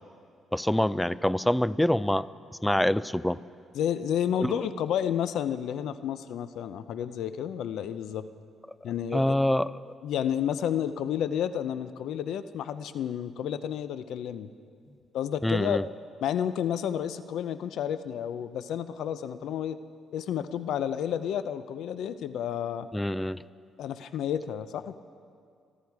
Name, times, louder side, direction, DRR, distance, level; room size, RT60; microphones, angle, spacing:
voice 1, 0.5-2.3 2.6-3.4 4.4-4.5 9.1-9.8 15.4-15.8 22.9-23.4, left 1 dB, 5° left, 18 dB, 0.4 m, -25 dB
voice 2, 3.7-8.3 8.8-9.4 10.0-14.5 15.1-15.8 16.2-19.8 20.1-22.9 23.8-25.0, left 9 dB, 80° left, 13 dB, 0.6 m, -31 dB
24.0 x 12.5 x 4.8 m, 2.3 s
cardioid pair, 90°, 0 cm